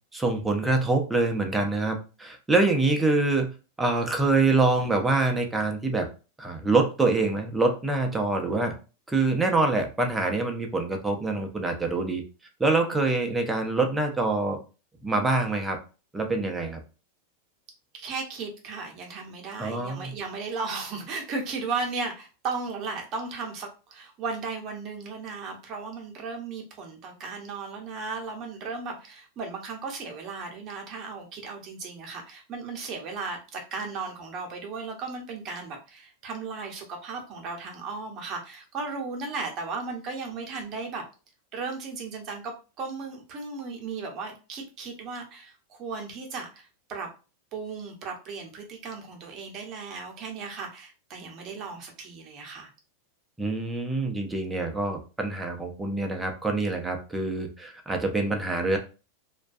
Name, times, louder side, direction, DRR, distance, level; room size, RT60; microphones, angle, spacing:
voice 1, 0.1-6.1 6.4-8.7 9.1-12.2 12.6-14.6 15.0-15.8 16.1-16.8 19.6-20.1 53.4-58.8, right 3 dB, 10° right, 3 dB, 0.5 m, -25 dB
voice 2, 17.9-41.0 41.5-47.1 47.5-52.7, right 4 dB, 40° right, 1 dB, 0.8 m, -36 dB
2.3 x 2.2 x 2.5 m, 0.33 s
supercardioid pair, 130°, 0 cm